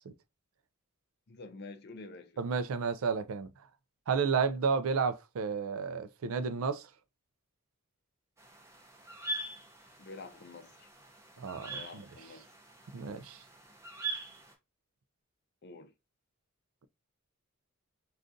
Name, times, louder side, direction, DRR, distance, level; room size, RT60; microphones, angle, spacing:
voice 1, 1.3-2.4 10.0-10.9 11.7-12.5 15.6-15.9, left 3 dB, 50° left, 0.6 m, -48 dB
voice 2, 2.4-3.5 4.1-6.9 11.4-12.1 12.9-13.4, right 5 dB, 80° right, 0.4 m, -32 dB
sound 1, 8.4-14.5, right 3 dB, 15° right, 0.6 m, -43 dB
3.7 x 2.4 x 2.5 m
head